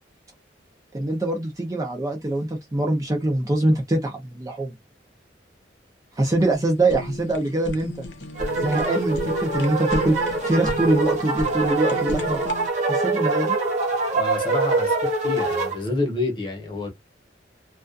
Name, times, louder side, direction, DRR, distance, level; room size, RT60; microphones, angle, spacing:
voice 1, 0.9-4.7 6.2-7.9 8.6-10.2 10.4-12.4 12.8-13.6, right 2 dB, 20° right, 0.4 m, -23 dB
Fire, 6.4-12.7, left 1 dB, 80° left, 0.7 m, -35 dB
sound 1, 8.4-15.8, right 3 dB, 40° right, 0.9 m, -24 dB
voice 2, 14.1-16.9, left 2 dB, 25° left, 0.9 m, -28 dB
2.3 x 2.3 x 2.5 m
head